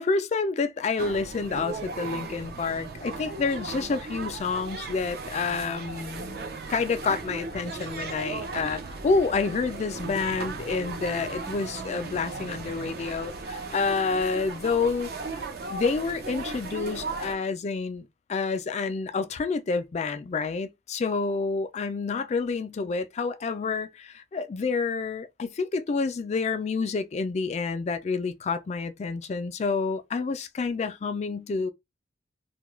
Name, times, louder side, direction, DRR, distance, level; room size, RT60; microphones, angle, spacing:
voice 1, 0.0-6.4 6.7-13.3 13.7-15.1 15.7-31.7, left 4 dB, 40° left, 0.3 m, -28 dB
sound 1, 1.0-17.4, right 3 dB, 60° right, 0.5 m, -37 dB
2.3 x 2.2 x 3.0 m
head